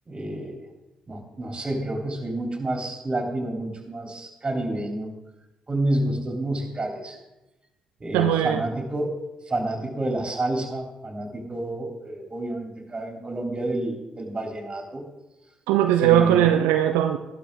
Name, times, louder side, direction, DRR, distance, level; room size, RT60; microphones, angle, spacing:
voice 1, 0.1-0.5 1.1-5.1 5.7-7.2 8.0-9.1 9.5-15.0 16.0-16.5, right 1 dB, 30° right, 2 dB, 3.5 m, -29 dB
voice 2, 8.1-8.6 15.7-17.2, right 11 dB, 80° right, 7 dB, 0.5 m, -19 dB
13.0 x 12.0 x 3.8 m, 0.99 s
hypercardioid pair, 45°, 3 cm